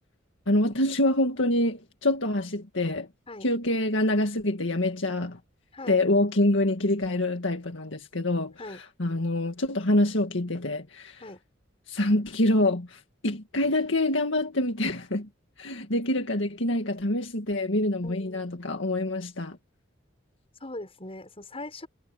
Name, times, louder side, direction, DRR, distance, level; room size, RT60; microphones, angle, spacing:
voice 1, 0.5-3.1 3.4-5.4 5.9-11.2 11.9-15.3 15.6-19.6, left 1 dB, 70° left, 2.0 m, -26 dB
voice 2, 18.0-18.5 20.6-21.9, left 2 dB, 30° left, 6.8 m, -40 dB
head